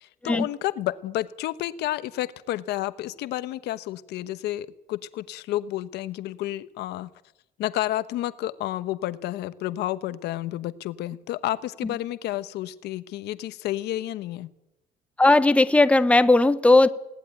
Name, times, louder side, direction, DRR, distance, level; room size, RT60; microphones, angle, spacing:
voice 1, 0.0-7.1 7.6-14.5, left 14 dB, 80° left, 1.1 m, -30 dB
voice 2, 15.2-16.9, left 2 dB, 5° left, 0.9 m, -17 dB
20.0 x 18.0 x 9.2 m
cardioid pair, 110°, 17 cm